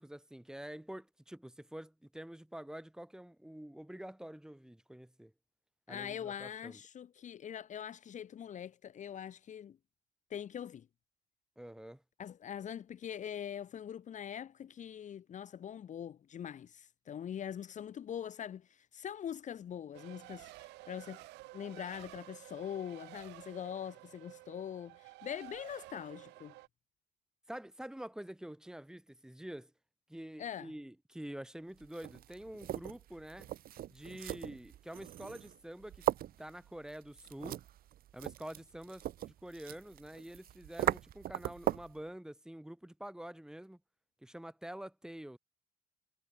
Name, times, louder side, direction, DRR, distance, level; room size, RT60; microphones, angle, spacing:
voice 1, 0.0-5.3 5.9-6.8 11.6-12.0 27.5-29.7 30.1-33.5 33.9-36.1 36.4-37.6 38.1-43.8 44.2-45.4, right 1 dB, 5° right, 7.4 m, -47 dB
voice 2, 5.9-9.8 10.3-10.9 12.2-21.2 21.5-26.5 30.4-30.7, left 9 dB, 45° left, 1.6 m, -43 dB
Race car auto racing, 19.9-26.7, right 20 dB, 90° right, 2.6 m, -52 dB
sound 1, 31.8-42.0, right 12 dB, 60° right, 1.2 m, -39 dB
cardioid pair, 110°, 17 cm